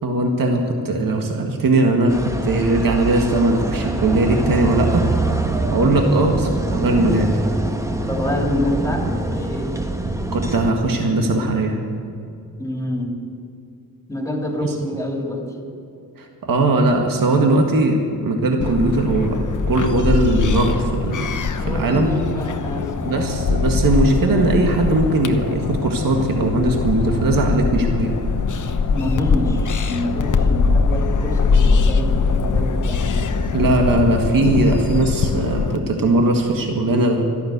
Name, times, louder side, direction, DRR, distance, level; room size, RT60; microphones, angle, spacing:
voice 1, 0.0-2.2 2.4-5.1 5.7-7.5 10.3-11.8 14.6-14.7 16.2-19.4 19.7-22.1 23.0-28.1 33.5-37.2, right 2 dB, 60° right, 2 dB, 1.8 m, -19 dB
sound 1, 2.1-10.7, right 2 dB, 10° right, 1.1 m, -24 dB
voice 2, 8.1-9.8 12.6-13.2 14.1-15.5 21.5-23.8 28.9-33.9, left 1 dB, 10° left, 1 dB, 2.8 m, -27 dB
sound 2, 18.6-35.8, left 4 dB, 55° left, 1.0 m, -21 dB
13.0 x 11.5 x 8.1 m, 2.5 s
cardioid pair, 80°, 38 cm